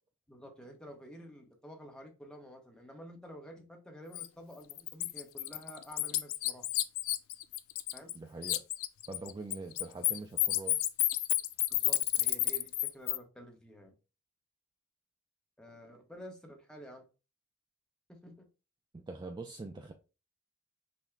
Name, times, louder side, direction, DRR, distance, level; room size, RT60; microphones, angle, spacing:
voice 1, 0.3-6.7 7.9-8.1 11.7-13.9 15.6-17.0 18.1-18.5, equal, 5° left, 0.8 m, -50 dB
Bird, 4.1-4.3 4.7-8.2 8.4-13.2, left 16 dB, 70° left, 0.3 m, -31 dB
voice 2, 8.1-8.6 9.1-10.8 18.9-19.9, right 3 dB, 20° right, 0.3 m, -43 dB
5.7 x 2.1 x 3.1 m
head